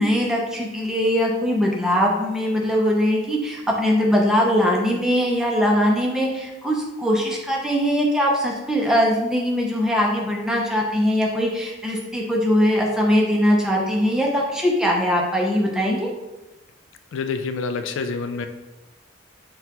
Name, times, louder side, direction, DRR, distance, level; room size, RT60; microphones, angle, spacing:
voice 1, 0.0-16.1, equal, 5° right, -2 dB, 0.5 m, -21 dB
voice 2, 17.1-18.5, left 4 dB, 75° left, 8 dB, 0.3 m, -27 dB
5.5 x 2.3 x 2.9 m, 1.1 s
head